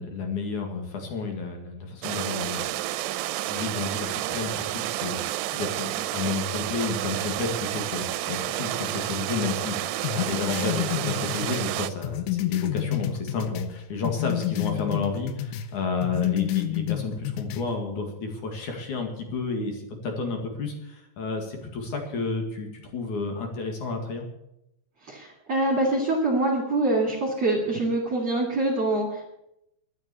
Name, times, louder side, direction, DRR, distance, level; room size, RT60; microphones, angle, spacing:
voice 1, 0.0-2.6 3.4-5.2 5.5-24.3, left 4 dB, 50° left, 3 dB, 3.1 m, -31 dB
sound 1, 2.0-11.9, right 15 dB, 80° right, 2.7 m, -30 dB
sound 2, 10.0-13.7 14.0-15.7 16.0-17.7, left 12 dB, 85° left, 3.0 m, -29 dB
voice 2, 25.0-29.2, right 2 dB, 40° right, -3 dB, 3.4 m, -25 dB
12.0 x 9.8 x 8.4 m, 0.82 s
omnidirectional pair, 4.9 m